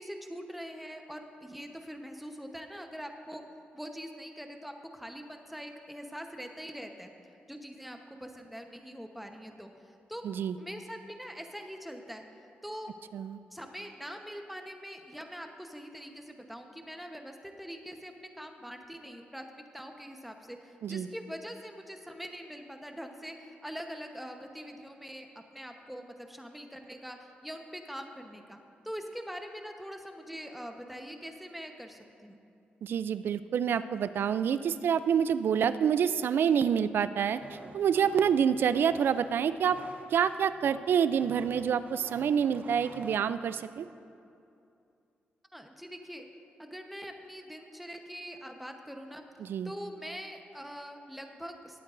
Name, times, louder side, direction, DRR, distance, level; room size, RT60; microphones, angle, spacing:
voice 1, 0.0-3.4 3.7-7.1 7.5-10.3 10.6-12.2 12.6-12.9 13.5-23.3 23.6-32.4 45.5-46.2 46.6-49.2 49.6-51.8, equal, 5° right, 4 dB, 1.0 m, -43 dB
voice 2, 10.2-10.6 13.1-13.4 20.8-21.1 32.8-37.4 37.7-39.8 40.1-43.9 49.4-49.7, right 8 dB, 70° right, 13 dB, 0.4 m, -27 dB
sound 1, 37.3-43.2, right 3 dB, 50° right, 1.1 m, -51 dB
19.5 x 8.4 x 2.6 m, 2.6 s
cardioid pair, 70°, 4 cm